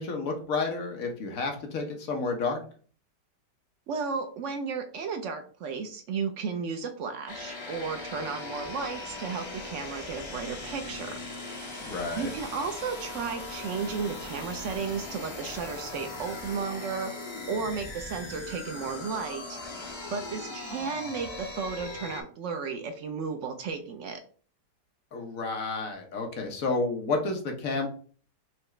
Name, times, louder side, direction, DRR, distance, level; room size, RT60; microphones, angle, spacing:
voice 1, 0.0-2.6 11.8-12.3 25.1-27.9, left 3 dB, 60° left, 3 dB, 1.2 m, -30 dB
voice 2, 3.9-11.2 12.2-17.1 17.5-19.6 20.1-24.2, right 5 dB, 80° right, 6 dB, 0.6 m, -34 dB
sound 1, 7.3-22.2, left 2 dB, 40° left, 0.4 m, -39 dB
4.7 x 2.8 x 3.1 m, 0.43 s
omnidirectional pair, 1.8 m